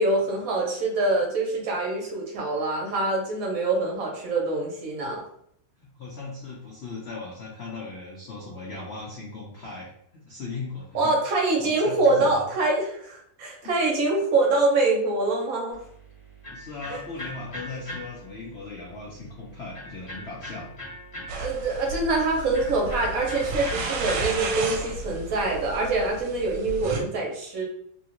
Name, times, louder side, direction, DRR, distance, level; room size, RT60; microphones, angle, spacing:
voice 1, 0.0-5.2 10.9-15.8 16.9-17.0 21.4-27.6, right 2 dB, 60° right, -1 dB, 1.1 m, -25 dB
voice 2, 5.8-11.1 11.6-12.4 13.6-13.7 16.5-20.7, left 3 dB, 75° left, -4 dB, 0.5 m, -38 dB
Electric guitar, 15.7-24.8, equal, 30° left, 0.7 m, -42 dB
sound 1, 21.3-27.0, right 3 dB, 75° right, 1.2 m, -33 dB
3.0 x 2.4 x 2.8 m, 0.69 s
omnidirectional pair, 2.0 m